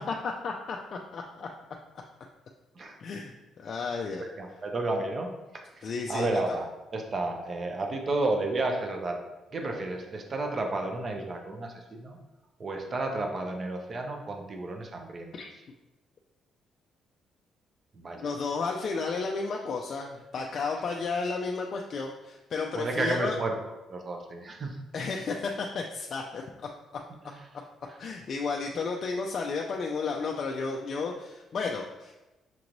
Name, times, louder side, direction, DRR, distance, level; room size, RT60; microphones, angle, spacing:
voice 1, 0.0-1.5 3.0-3.3 3.6-4.2 5.8-6.3 15.3-15.5 18.2-23.4 24.9-26.4 28.0-32.1, left 4 dB, 45° left, 1 dB, 0.3 m, -32 dB
voice 2, 4.2-9.2 9.5-12.2 12.6-15.3 17.9-18.3 22.7-24.8 27.2-27.5, right 2 dB, 35° right, 3 dB, 0.6 m, -32 dB
5.9 x 3.0 x 2.6 m, 1.1 s
cardioid pair, 135°, 0 cm